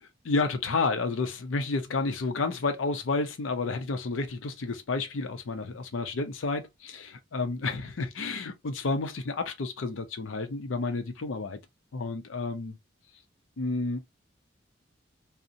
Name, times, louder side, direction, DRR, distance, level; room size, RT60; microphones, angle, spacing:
voice 1, 0.0-11.6 11.9-12.8 13.6-14.0, left 3 dB, 80° left, 0.6 m, -31 dB
2.5 x 2.1 x 2.7 m
head